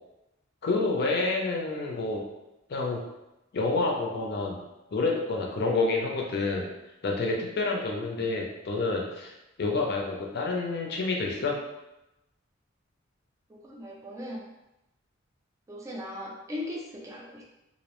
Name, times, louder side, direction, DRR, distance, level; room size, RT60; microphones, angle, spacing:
voice 1, 0.6-2.2 2.7-3.0 3.5-4.6 4.9-6.7 7.0-9.3 9.6-11.6, left 3 dB, 55° left, 0 dB, 0.5 m, -28 dB
voice 2, 13.5-14.4 15.7-17.4, left 1 dB, 15° right, -3 dB, 0.4 m, -38 dB
2.6 x 2.0 x 2.9 m, 0.92 s
head